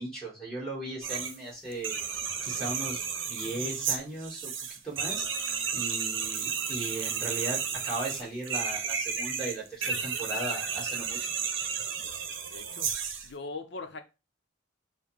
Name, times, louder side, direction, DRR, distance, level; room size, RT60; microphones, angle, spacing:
voice 1, 0.0-11.3, right 2 dB, 5° left, -4 dB, 2.4 m, -38 dB
sound 1, 1.0-1.4 1.7-13.3, right 6 dB, 70° right, 0.8 m, -32 dB
voice 2, 12.5-12.9 13.2-14.0, left 3 dB, 60° left, 7 dB, 0.7 m, -40 dB
6.6 x 2.2 x 3.6 m, 0.28 s
head